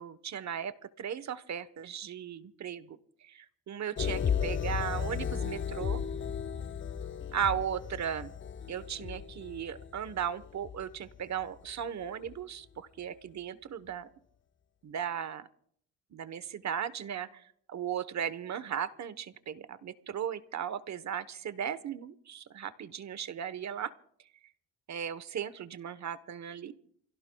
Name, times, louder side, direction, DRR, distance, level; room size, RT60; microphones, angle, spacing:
voice 1, 0.0-6.0 7.3-8.3 8.7-14.1 14.8-15.5 16.1-17.4 17.7-23.9 24.9-26.7, right 8 dB, 50° right, 14 dB, 1.1 m, -37 dB
sound 1, 4.0-11.8 12.2-12.4, left 7 dB, 35° left, 0.7 m, -35 dB
29.0 x 17.0 x 2.3 m, 0.65 s
cardioid pair, 85°, 35 cm